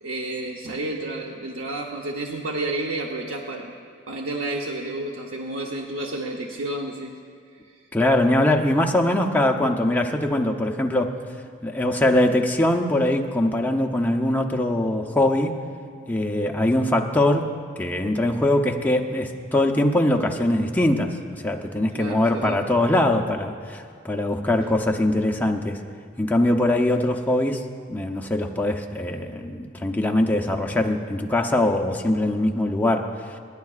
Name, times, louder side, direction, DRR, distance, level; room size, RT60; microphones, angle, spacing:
voice 1, 0.0-3.7 4.1-7.1 7.6-7.8 21.9-22.6, right 2 dB, 90° right, 0 dB, 0.9 m, -31 dB
voice 2, 7.9-11.1 11.6-15.6 16.0-25.8 26.2-27.6 27.9-33.1, left 1 dB, 10° left, 2 dB, 0.7 m, -22 dB
28.5 x 10.5 x 2.4 m, 2.2 s
head